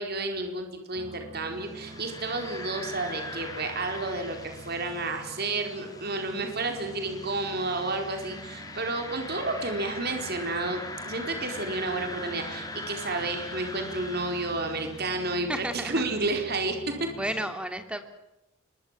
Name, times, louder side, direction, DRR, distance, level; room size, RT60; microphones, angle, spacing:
voice 1, 0.0-17.1, right 2 dB, 50° right, 4 dB, 4.6 m, -31 dB
sound 1, 0.9-17.4, right 1 dB, 30° right, 3.5 m, -46 dB
sound 2, 1.6-15.6, left 2 dB, 20° left, 4.7 m, -42 dB
voice 2, 15.5-16.0 16.9-18.0, right 1 dB, 5° right, 7 dB, 3.2 m, -33 dB
27.5 x 23.5 x 7.6 m, 0.93 s
head